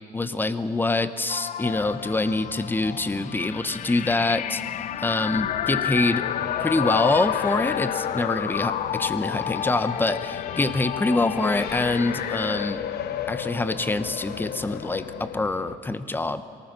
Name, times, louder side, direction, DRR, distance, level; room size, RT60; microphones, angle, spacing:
voice 1, 0.1-4.6 5.0-6.2 6.6-12.8 13.3-16.4, left 2 dB, 10° left, 12 dB, 0.9 m, -25 dB
sound 1, 1.3-12.7, left 11 dB, 45° left, 0.4 m, -31 dB
Race car auto racing, 1.7-15.8, left 9 dB, 70° left, 1.1 m, -34 dB
24.0 x 19.5 x 6.1 m, 2.3 s
cardioid pair, 110°, 17 cm